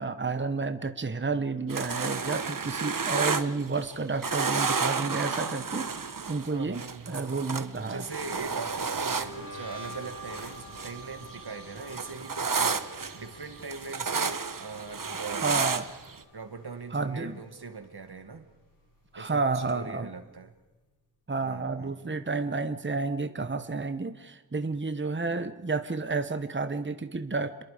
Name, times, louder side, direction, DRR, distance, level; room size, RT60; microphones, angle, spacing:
voice 1, 0.0-5.9 6.3-8.1 15.1-15.8 16.9-17.4 19.1-20.1 21.3-27.6, right 4 dB, 30° right, 10 dB, 1.1 m, -31 dB
sound 1, 1.7-4.0 4.2-11.0 11.3-16.2, right 5 dB, 60° right, 1.2 m, -31 dB
voice 2, 6.5-7.4 7.8-15.6 16.3-18.5 19.2-20.5 21.4-22.1, right 4 dB, 85° right, 7 dB, 2.1 m, -41 dB
sound 2, 8.1-17.3 17.6-18.0 18.3-19.9, right 1 dB, 60° left, 7.7 m, -48 dB
28.5 x 22.0 x 5.1 m, 1.1 s
wide cardioid pair, 70°, 38 cm